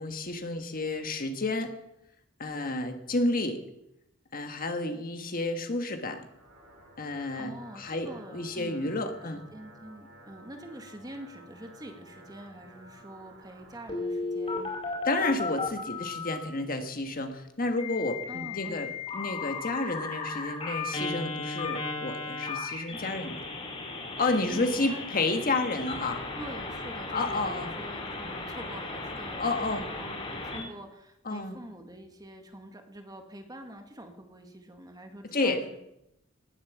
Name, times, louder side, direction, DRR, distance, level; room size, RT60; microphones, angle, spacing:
voice 1, 0.0-1.7 2.4-3.6 4.3-6.2 7.0-9.4 15.0-23.4 24.2-26.2 27.1-27.7 29.4-29.8 31.2-31.6 35.3-35.6, left 2 dB, 45° left, 6 dB, 1.6 m, -31 dB
sound 1, 6.1-14.0, right 1 dB, 70° right, 4.2 m, -53 dB
voice 2, 7.3-9.0 9.3-15.0 18.3-18.8 24.5-25.0 26.4-35.8, right 1 dB, 20° right, 5 dB, 1.9 m, -45 dB
Telephone, 13.9-16.4 17.8-30.6, left 3 dB, 30° left, 4.6 m, -35 dB
19.0 x 8.6 x 7.2 m, 0.85 s
head